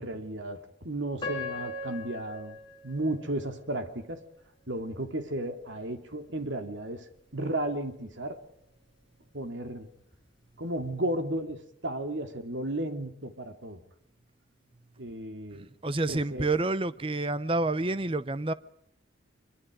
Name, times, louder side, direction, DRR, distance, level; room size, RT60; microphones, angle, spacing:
voice 1, 0.0-2.6 2.8-4.2 4.7-7.1 7.3-8.4 9.3-9.9 10.6-13.8 15.0-15.7 16.1-16.5, right 1 dB, 80° right, 2.6 m, -34 dB
Piano, 1.2-4.2 4.8-4.9 5.5-5.8, left 2 dB, 25° left, 5.9 m, -39 dB
voice 2, 15.8-18.5, right 2 dB, 30° right, 0.8 m, -28 dB
24.0 x 23.5 x 5.0 m
head